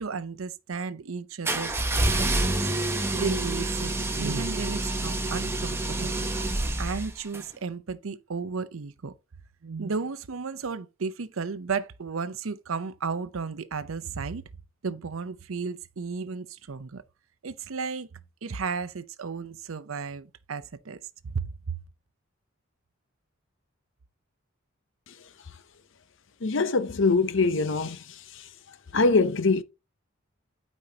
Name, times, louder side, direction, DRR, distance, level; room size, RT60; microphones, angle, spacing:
voice 1, 0.0-2.5 3.1-6.3 6.8-9.1 9.6-14.4 14.8-17.0 17.4-18.1 18.4-21.0 21.3-21.8, right 5 dB, 90° right, 0.7 m, -34 dB
sound 1, 1.5-7.4, right 2 dB, 10° right, 0.9 m, -28 dB
voice 2, 26.4-28.0 28.9-29.6, left 3 dB, 65° left, 0.7 m, -23 dB
12.0 x 5.4 x 2.8 m
head